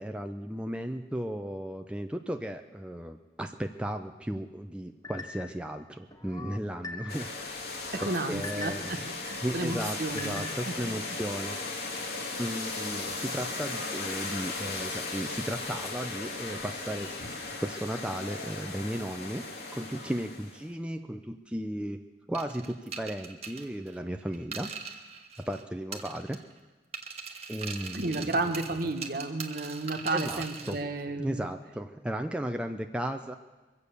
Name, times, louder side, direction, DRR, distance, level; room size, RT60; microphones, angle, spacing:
voice 1, 0.0-7.3 8.0-8.9 9.4-11.6 12.4-17.1 17.6-19.4 19.7-22.0 22.3-24.7 25.4-26.4 27.5-28.4 30.1-30.8 31.2-33.3, right 1 dB, 5° right, 5 dB, 0.5 m, -35 dB
sound 1, 5.0-5.6 6.1-7.3 7.7-9.0 9.5-10.8 11.2-11.7, left 3 dB, 20° left, 1.1 m, -43 dB
sound 2, 7.1-20.6, left 3 dB, 60° left, 2.1 m, -37 dB
voice 2, 7.9-8.7 9.2-10.9 27.9-31.5, right 2 dB, 55° right, 6 dB, 1.3 m, -32 dB
sound 3, 22.3-25.6 25.9-26.6 26.9-30.8, right 5 dB, 35° right, 1.3 m, -41 dB
23.0 x 8.2 x 6.9 m, 1.2 s
head